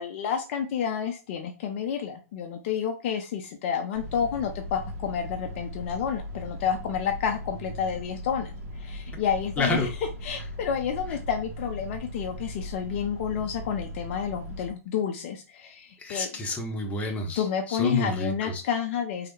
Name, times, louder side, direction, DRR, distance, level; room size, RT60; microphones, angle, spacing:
voice 1, 0.0-9.9 10.2-16.3 17.4-19.3, left 8 dB, 50° left, 4 dB, 0.4 m, -30 dB
sound 1, 3.9-14.7, equal, 55° right, 0.7 m, -38 dB
voice 2, 9.6-9.9 16.0-18.6, left 2 dB, 15° left, 2 dB, 0.7 m, -29 dB
3.1 x 2.0 x 3.0 m, 0.33 s
hypercardioid pair, 115°, 8 cm